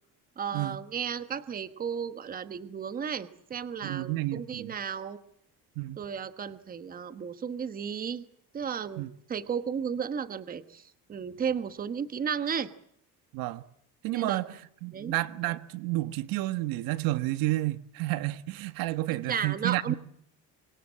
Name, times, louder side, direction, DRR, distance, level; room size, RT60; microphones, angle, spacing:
voice 1, 0.4-5.2 6.0-8.2 8.5-10.8 11.1-12.7 14.1-14.4 14.9-15.1 19.3-19.9, right 7 dB, 25° right, 1.2 m, -34 dB
voice 2, 3.8-4.7 5.8-6.0 9.0-9.1 13.3-13.6 14.0-19.9, right 17 dB, 75° right, 1.3 m, -31 dB
26.0 x 25.5 x 7.5 m
cardioid pair, 160°, 35 cm